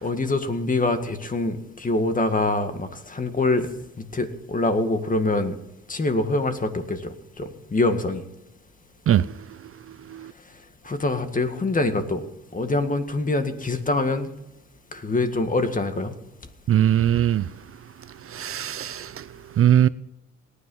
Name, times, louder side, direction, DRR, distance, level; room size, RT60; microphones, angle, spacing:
voice 1, 0.0-3.7 4.1-5.6 5.9-8.2 10.8-12.2 12.5-14.3 14.9-16.1, left 2 dB, 25° left, 1.9 m, -24 dB
voice 2, 16.7-17.4 18.3-19.1 19.6-19.9, right 10 dB, 50° right, 0.5 m, -19 dB
18.0 x 9.9 x 5.6 m
cardioid pair, 90°, 30 cm